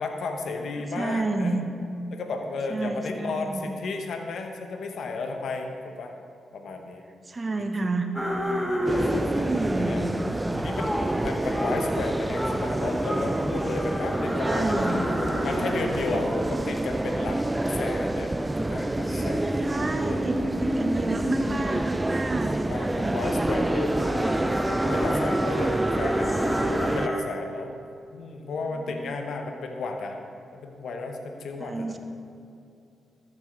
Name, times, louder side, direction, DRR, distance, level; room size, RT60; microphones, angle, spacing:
voice 1, 0.0-1.5 2.1-6.1 6.5-7.0 7.8-7.9 8.8-10.2 10.6-15.0 15.4-17.4 17.7-19.7 20.0-20.2 22.7-27.7 28.1-30.2 30.5-31.9, left 3 dB, 70° left, 4 dB, 0.9 m, -33 dB
voice 2, 0.9-1.6 2.7-3.7 7.2-8.1 9.2-10.1 14.3-15.1 19.6-23.2 26.2-26.9 28.7-29.1 31.6-32.0, right 2 dB, 35° right, 6 dB, 0.9 m, -30 dB
sound 1, 8.1-27.2, equal, 5° left, 1.7 m, -32 dB
sound 2, 8.8-27.1, right 1 dB, 20° right, 0.3 m, -28 dB
13.0 x 6.6 x 3.9 m, 2.6 s
supercardioid pair, 45°, 0 cm